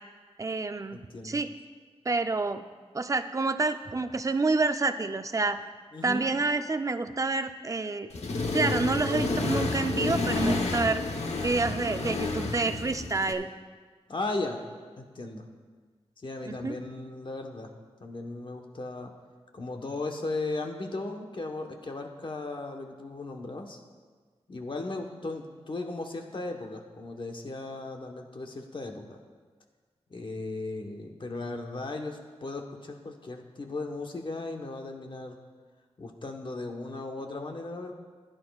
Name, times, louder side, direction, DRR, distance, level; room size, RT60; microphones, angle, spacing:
voice 1, 0.4-1.5 2.1-2.6 2.9-5.6 6.0-8.1 8.5-11.0 11.4-13.5 16.5-16.7, right 3 dB, 30° right, 9 dB, 0.5 m, -28 dB
voice 2, 0.9-1.4 5.9-6.2 14.1-14.6 15.0-15.4 16.2-17.7 18.0-19.1 19.5-23.8 24.5-29.2 30.1-35.4 36.0-37.9, left 2 dB, 50° left, 2 dB, 1.1 m, -36 dB
Accelerating revving vroom, 8.1-13.3, left 2 dB, 85° left, 1.0 m, -29 dB
15.5 x 10.5 x 2.4 m, 1.5 s
wide cardioid pair, 100°, 11 cm